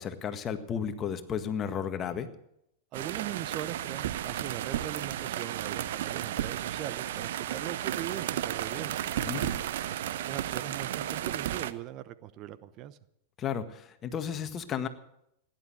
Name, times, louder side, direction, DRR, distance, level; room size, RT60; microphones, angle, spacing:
voice 1, 0.0-2.3 9.2-9.5 13.4-14.9, left 8 dB, 30° left, 9 dB, 1.7 m, -33 dB
voice 2, 2.9-9.1 10.1-13.0, right 12 dB, 45° right, 15 dB, 0.9 m, -40 dB
sound 1, 2.9-11.7, right 12 dB, 70° right, 0.8 m, -33 dB
16.5 x 11.0 x 7.7 m, 0.77 s
hypercardioid pair, 100°, 0 cm